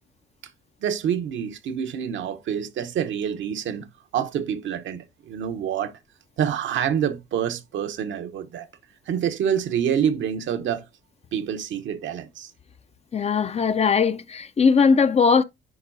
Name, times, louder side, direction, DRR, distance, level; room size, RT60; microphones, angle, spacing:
voice 1, 0.8-3.9 4.1-5.9 6.4-8.7 9.1-10.9 11.3-12.5, right 8 dB, 70° right, 0.9 m, -27 dB
voice 2, 13.1-15.4, left 5 dB, 35° left, 0.5 m, -19 dB
10.0 x 3.9 x 2.6 m
cardioid pair, 90°, 20 cm